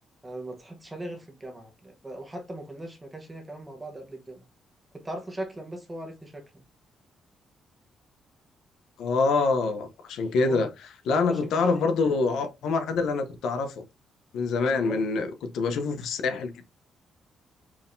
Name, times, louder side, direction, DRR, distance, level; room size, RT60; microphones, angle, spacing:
voice 1, 0.2-4.4 4.9-6.4 10.4-10.7 11.1-12.2 14.8-15.0, right 1 dB, 15° right, 1.0 m, -39 dB
voice 2, 9.0-10.7 11.1-13.8 14.3-16.6, left 4 dB, 80° left, 0.7 m, -25 dB
4.7 x 3.6 x 2.6 m
cardioid pair, 145°, 0 cm